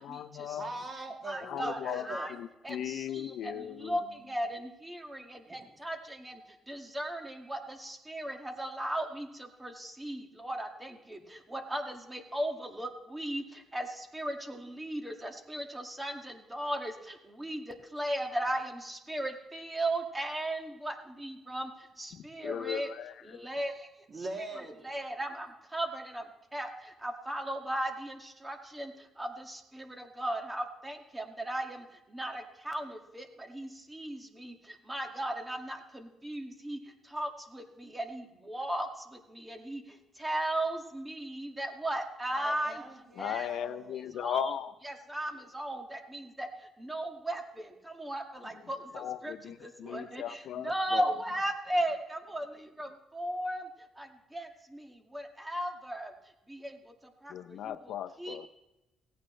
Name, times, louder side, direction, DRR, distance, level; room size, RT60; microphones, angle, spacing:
voice 1, 0.0-0.7 1.4-4.0 22.1-23.4 43.2-44.7 48.9-51.1 57.3-58.5, left 10 dB, 80° left, 12 dB, 0.6 m, -38 dB
voice 2, 0.6-2.3 5.5-5.7 24.1-24.8 42.3-44.0, right 2 dB, 35° right, 2 dB, 2.7 m, -41 dB
voice 3, 1.3-2.3 2.6-4.0 4.3-6.4 6.7-11.2 11.5-13.4 13.7-16.9 17.4-21.7 22.0-22.9 23.3-23.7 24.8-25.5 25.7-26.2 26.5-26.7 27.0-28.9 29.2-31.8 32.1-34.5 34.9-36.8 37.1-38.9 39.3-39.8 40.2-42.8 43.2-43.5 44.2-44.5 44.8-46.5 46.8-47.7 48.0-48.8 49.2-49.3 49.6-52.5 52.8-52.9 53.1-53.6 54.0-54.1 54.3-54.5 54.7-54.8 55.1-56.1 56.5-56.7 57.2-57.3 58.2-58.5, right 1 dB, 15° right, 4 dB, 2.0 m, -36 dB
17.0 x 15.5 x 3.2 m, 0.96 s
cardioid pair, 90°, 0 cm